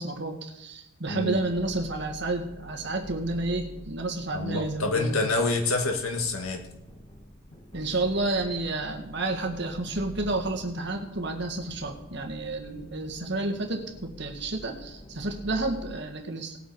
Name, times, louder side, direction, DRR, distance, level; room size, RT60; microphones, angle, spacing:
voice 1, 0.0-5.3 7.7-16.6, right 2 dB, 55° right, 3 dB, 1.6 m, -30 dB
sound 1, 1.0-16.0, equal, 25° left, 1.4 m, -46 dB
voice 2, 1.1-1.4 4.3-6.6, left 2 dB, 90° left, 4 dB, 1.8 m, -27 dB
18.5 x 8.1 x 4.7 m, 0.89 s
head